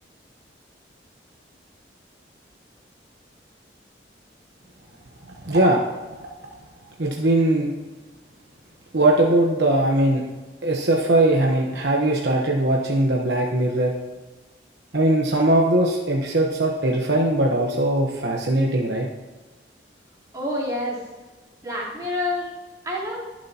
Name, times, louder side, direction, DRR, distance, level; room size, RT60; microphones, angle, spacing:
voice 1, 5.4-5.8 7.0-7.7 8.9-10.2 10.6-13.9 14.9-19.1, right 1 dB, 70° right, -1 dB, 1.2 m, -20 dB
voice 2, 20.3-21.0 21.6-22.5 22.8-23.2, left 1 dB, 20° right, -8 dB, 3.7 m, -27 dB
22.0 x 7.4 x 3.0 m, 1.3 s
head